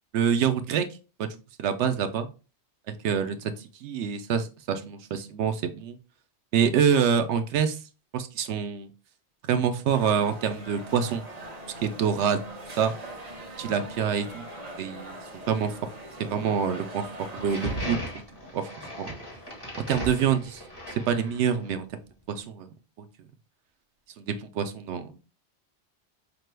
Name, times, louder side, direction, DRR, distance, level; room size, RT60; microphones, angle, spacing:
voice 1, 0.1-0.9 1.2-1.3 1.6-2.3 2.9-3.5 3.8-6.0 6.5-7.8 8.1-8.9 9.4-11.2 11.8-12.4 12.8-12.9 13.6-14.4 14.8-15.7 16.2-17.1 17.3-18.0 18.5-18.6 19.0-19.1 19.9-20.6 21.1-21.9 22.3-23.1 24.2-25.2, right 7 dB, 80° right, 9 dB, 0.9 m, -26 dB
sound 1, 9.9-17.8, right 1 dB, 40° right, 0.8 m, -42 dB
sound 2, 17.4-21.7, right 1 dB, 20° left, 1.2 m, -37 dB
5.1 x 2.2 x 3.2 m, 0.33 s
omnidirectional pair, 1.2 m